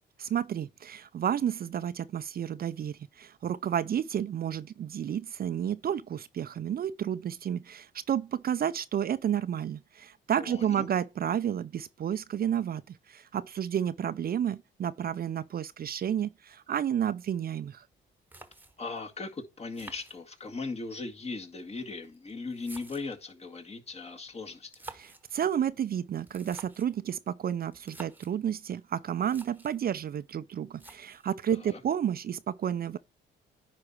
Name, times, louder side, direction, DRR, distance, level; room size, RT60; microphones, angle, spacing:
voice 1, 0.2-17.9 24.9-33.0, right 9 dB, 50° right, 0.6 m, -31 dB
voice 2, 10.4-10.9 18.8-24.9 31.5-31.8, left 3 dB, 30° left, 1.9 m, -38 dB
sound 1, 17.9-18.0 18.3-19.0 19.7-20.7 21.6-23.3 24.6-25.3 26.2-27.0 27.7-28.4 28.9-29.0 29.2-29.8 30.8-31.4, right 2 dB, 10° right, 1.3 m, -49 dB
10.0 x 4.2 x 4.7 m
cardioid pair, 90°, 20 cm